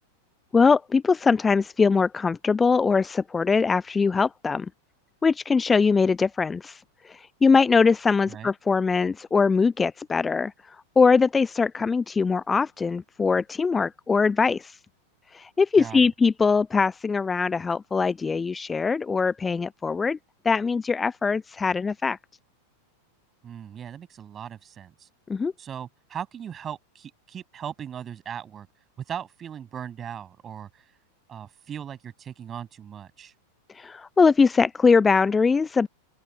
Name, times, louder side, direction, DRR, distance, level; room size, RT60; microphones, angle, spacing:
voice 1, 0.5-4.7 5.2-14.8 15.3-20.2 20.4-22.2 25.3-25.5 33.7-35.9, left 5 dB, 15° left, 0.5 m, -22 dB
voice 2, 15.8-16.1 23.4-25.1 25.6-28.7 29.1-30.8 31.3-33.3, right 8 dB, 25° right, 6.8 m, -38 dB
open air
figure-of-eight pair, 90°, 0 cm